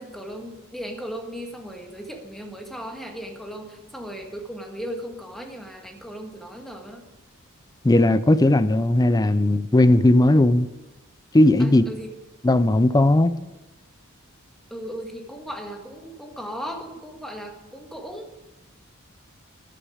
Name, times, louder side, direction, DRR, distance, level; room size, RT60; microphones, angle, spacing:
voice 1, 0.0-7.0 11.6-12.1 14.7-18.3, equal, ahead, 1.8 m, -36 dB
voice 2, 7.8-10.7 11.3-11.8 12.4-13.3, left 1 dB, 20° left, 0.5 m, -17 dB
14.0 x 10.0 x 5.0 m
head